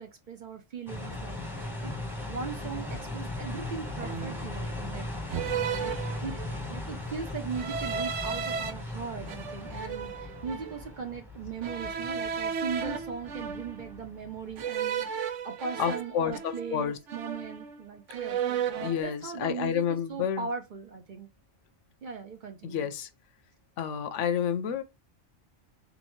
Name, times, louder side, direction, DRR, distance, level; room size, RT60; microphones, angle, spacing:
voice 1, 0.0-1.9 2.3-5.9 6.2-6.4 6.7-18.6 19.0-21.3 22.0-22.9, right 6 dB, 50° right, 0.7 m, -39 dB
sound 1, 0.9-14.6, left 2 dB, ahead, 1.0 m, -38 dB
sound 2, 2.9-3.1 4.0-4.5 5.3-6.7 7.5-8.7 9.3-10.8 11.6-14.0 14.6-16.8 17.1-17.8 18.1-19.0, right 7 dB, 85° right, 1.0 m, -34 dB
voice 2, 15.8-17.0 18.8-20.5 22.6-23.1 23.8-24.8, left 8 dB, 85° left, 1.0 m, -30 dB
3.8 x 3.6 x 3.0 m
omnidirectional pair, 1.2 m